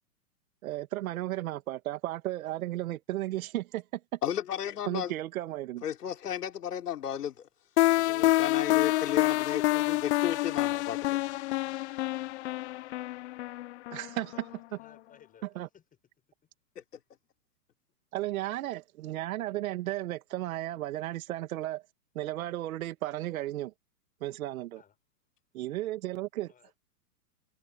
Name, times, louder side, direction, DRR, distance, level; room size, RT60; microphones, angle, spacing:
voice 1, 0.6-4.0 4.9-5.8 13.9-14.3 15.6-15.7 18.1-21.8 22.2-23.7 24.2-24.8 25.5-26.5, right 15 dB, 60° right, 2.0 m, -34 dB
voice 2, 4.2-5.1 5.8-7.5 8.1-11.2, left 10 dB, 85° left, 3.8 m, -34 dB
sound 1, 7.8-14.5, left 17 dB, 50° left, 0.5 m, -27 dB
voice 3, 14.2-15.8 24.8-25.0 26.5-26.8, left 8 dB, 20° left, 6.6 m, -59 dB
hypercardioid pair, 140°, 46 cm